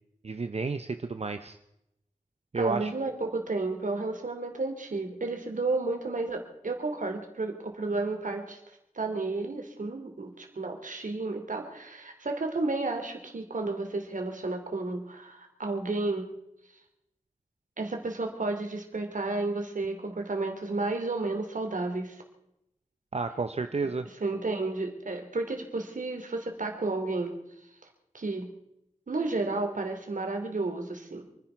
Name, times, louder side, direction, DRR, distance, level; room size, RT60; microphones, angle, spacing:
voice 1, 0.2-1.6 2.5-2.9 23.1-24.1, right 4 dB, 50° right, 8 dB, 0.8 m, -31 dB
voice 2, 2.5-8.6 8.9-16.3 17.8-22.2 23.8-23.9 24.2-27.3 28.1-28.5 29.1-31.2, right 3 dB, 75° right, 4 dB, 3.0 m, -32 dB
27.5 x 10.5 x 4.6 m, 0.83 s
wide cardioid pair, 60°, 13 cm